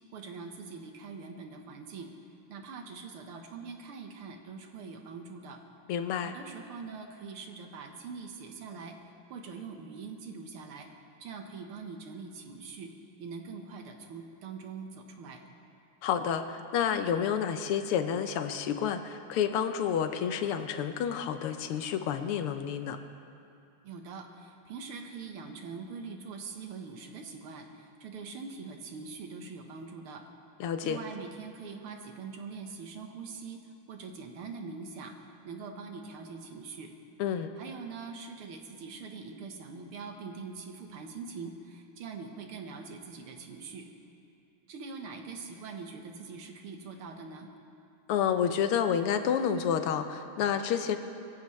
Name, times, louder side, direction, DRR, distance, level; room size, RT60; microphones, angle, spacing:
voice 1, 0.1-2.1 2.5-5.6 6.2-9.0 9.3-10.9 11.2-12.9 13.2-15.4 23.8-30.2 30.8-33.6 33.9-35.2 35.4-36.9 37.6-43.9 44.7-47.5, right 4 dB, 80° right, 4 dB, 2.1 m, -43 dB
voice 2, 5.9-6.3 16.0-23.0 30.6-31.0 37.2-37.5 48.1-51.0, left 8 dB, 90° left, 8 dB, 1.7 m, -29 dB
24.0 x 14.5 x 3.2 m, 2.6 s
omnidirectional pair, 2.4 m